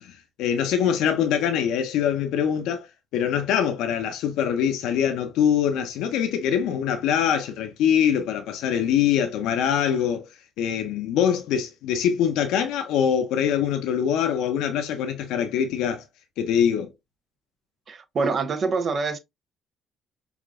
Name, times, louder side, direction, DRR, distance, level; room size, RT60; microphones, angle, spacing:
voice 1, 0.0-2.9 3.1-10.3 10.6-16.0 16.4-16.9, left 8 dB, 85° left, 0.6 m, -23 dB
voice 2, 17.9-19.2, right 4 dB, 50° right, 0.7 m, -25 dB
4.8 x 2.5 x 2.5 m
supercardioid pair, 65°, 0 cm